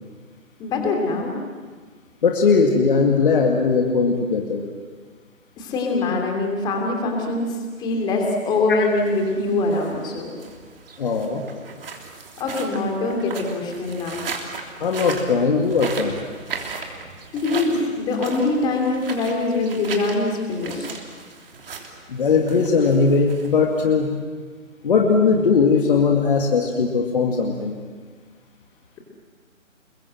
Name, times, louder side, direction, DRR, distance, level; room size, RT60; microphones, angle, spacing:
voice 1, 0.6-1.3 5.6-10.3 12.4-14.2 17.3-20.9, left 3 dB, 10° left, 1 dB, 2.8 m, -23 dB
voice 2, 2.2-4.6 11.0-11.4 14.8-16.2 22.1-24.1 24.8-27.8, left 5 dB, 40° left, 2 dB, 2.2 m, -19 dB
sound 1, 8.3-24.0, right 5 dB, 40° right, 3.3 m, -37 dB
29.0 x 22.0 x 7.8 m, 1.5 s
figure-of-eight pair, 150°, 41 cm